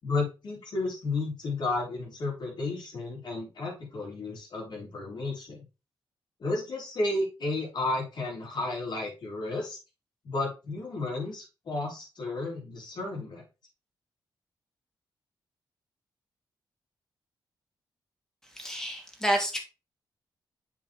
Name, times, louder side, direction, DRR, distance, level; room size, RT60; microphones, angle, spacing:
voice 1, 0.0-5.6 6.4-9.8 10.2-13.4, left 2 dB, 60° left, 4.5 m, -32 dB
voice 2, 18.4-19.6, right 1 dB, 5° left, 2.5 m, -29 dB
8.1 x 4.9 x 3.6 m
cardioid pair, 85°, 8 cm